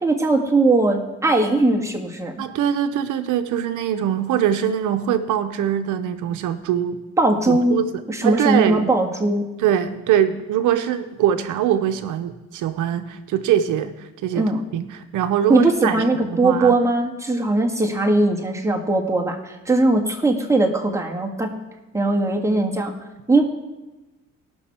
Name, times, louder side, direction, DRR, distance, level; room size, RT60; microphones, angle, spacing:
voice 1, 0.0-2.3 7.2-7.8 8.1-9.4 14.3-14.6 15.5-21.5 21.9-22.9 23.3-23.4, right 2 dB, 10° right, -1 dB, 1.7 m, -19 dB
voice 2, 2.4-7.0 7.5-7.9 8.2-8.9 9.6-14.4 14.7-16.8, right 10 dB, 85° right, 10 dB, 0.7 m, -22 dB
18.5 x 6.2 x 4.3 m, 1.1 s
cardioid pair, 90°, 30 cm